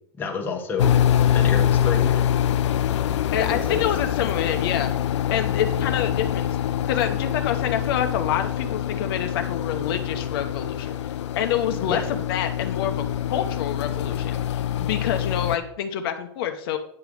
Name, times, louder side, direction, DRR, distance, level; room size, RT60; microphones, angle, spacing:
voice 1, 0.2-0.9 1.3-2.2 3.4-3.8 11.8-12.1, left 5 dB, 15° left, 1 dB, 1.0 m, -29 dB
sound 1, 0.8-15.6, left 10 dB, 85° left, 0.6 m, -24 dB
voice 2, 3.3-4.9 5.3-6.5 6.9-13.0 13.3-16.8, left 9 dB, 55° left, 6 dB, 0.8 m, -27 dB
9.5 x 3.4 x 6.3 m, 0.69 s
supercardioid pair, 155°, 15 cm